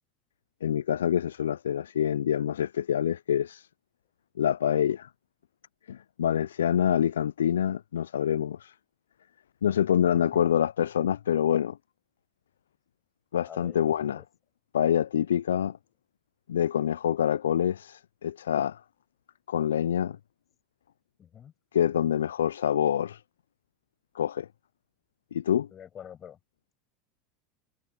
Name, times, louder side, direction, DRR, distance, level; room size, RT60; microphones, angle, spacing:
voice 1, 0.6-3.7 4.4-5.1 5.9-8.7 9.6-11.8 13.3-14.2 14.7-15.8 16.5-18.8 19.5-20.2 21.7-23.2 24.2-24.5 25.3-25.7, left 9 dB, 80° left, 0.3 m, -26 dB
voice 2, 13.4-13.8 14.1-14.2 21.2-21.5 25.7-26.4, left 9 dB, 35° left, 6.3 m, -46 dB
hypercardioid pair, 85°, 0 cm